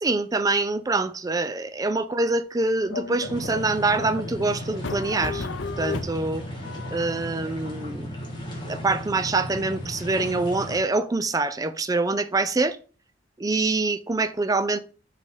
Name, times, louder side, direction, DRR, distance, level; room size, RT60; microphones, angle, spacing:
voice 1, 0.0-5.5 5.8-6.5 6.9-8.1 8.7-12.8 13.4-14.8, right 3 dB, 20° right, 0.4 m, -25 dB
sound 1, 2.9-7.7, left 5 dB, 80° left, 0.5 m, -35 dB
sound 2, 3.2-10.8, equal, 25° left, 1.6 m, -35 dB
5.3 x 3.4 x 5.3 m
head